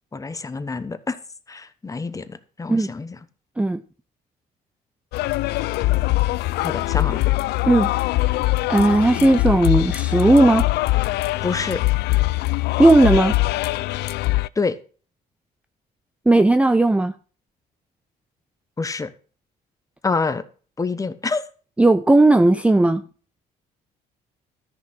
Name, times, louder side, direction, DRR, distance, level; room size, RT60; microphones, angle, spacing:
voice 1, 0.1-1.2 1.5-3.2 6.6-7.2 11.4-11.8 14.6-14.8 18.8-19.1 20.0-20.4 20.8-21.4, left 4 dB, 20° left, 1.1 m, -26 dB
sound 1, 5.1-14.5, left 19 dB, 75° left, 0.5 m, -22 dB
voice 2, 8.7-10.7 12.8-13.3 16.3-17.1 21.8-23.0, right 2 dB, 5° right, 0.5 m, -16 dB
13.5 x 6.1 x 6.1 m
cardioid pair, 110°, 17 cm